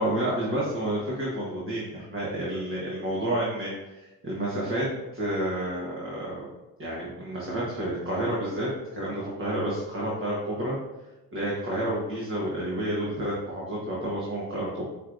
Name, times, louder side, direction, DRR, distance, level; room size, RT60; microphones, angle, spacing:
voice 1, 0.0-4.9 5.1-6.4 6.8-10.8 11.3-14.8, right 1 dB, 35° right, -6 dB, 1.3 m, -30 dB
5.4 x 3.1 x 2.6 m, 1.0 s
cardioid pair, 80°, 36 cm